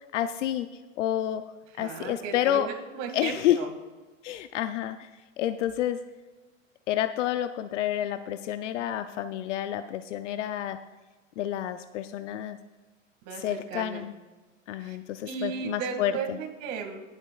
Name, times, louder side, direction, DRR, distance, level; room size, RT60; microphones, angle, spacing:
voice 1, 0.1-0.7 1.0-2.7 3.1-3.6 4.2-5.1 5.4-6.0 6.9-10.8 11.4-12.6 13.3-14.1 14.7-16.4, left 11 dB, 65° left, 11 dB, 0.6 m, -29 dB
voice 2, 1.8-3.7 13.2-14.0 14.8-15.0 15.3-17.0, right 6 dB, 45° right, 2 dB, 2.0 m, -35 dB
19.0 x 8.0 x 2.4 m, 1.3 s
hypercardioid pair, 115°, 39 cm